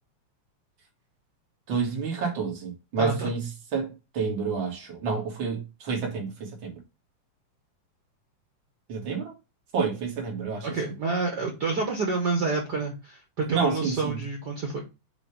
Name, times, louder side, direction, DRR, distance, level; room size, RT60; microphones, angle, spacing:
voice 1, 1.7-3.5 3.7-6.8 8.9-9.3 9.7-10.7 13.5-14.2, right 5 dB, 45° right, 2.1 m, -29 dB
voice 2, 3.0-3.3 10.6-14.8, right 3 dB, 80° right, 0.9 m, -28 dB
6.7 x 2.7 x 5.6 m
omnidirectional pair, 3.5 m